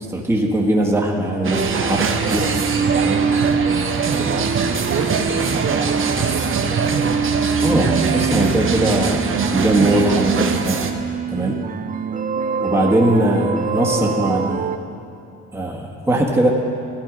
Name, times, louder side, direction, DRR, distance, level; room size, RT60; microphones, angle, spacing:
voice 1, 0.1-2.5 3.0-3.2 7.6-11.0 11.3-11.5 12.6-14.7 15.5-16.5, right 1 dB, 10° right, -1 dB, 1.5 m, -20 dB
sound 1, 1.4-10.9, right 5 dB, 45° right, 0.9 m, -23 dB
sound 2, 1.5-14.8, right 6 dB, 25° right, 0.5 m, -25 dB
voice 2, 2.9-3.8 4.2-6.8 11.3-11.6, right 5 dB, 80° right, 3 dB, 1.2 m, -30 dB
14.5 x 10.0 x 5.1 m, 2.6 s
cardioid pair, 90°, 30 cm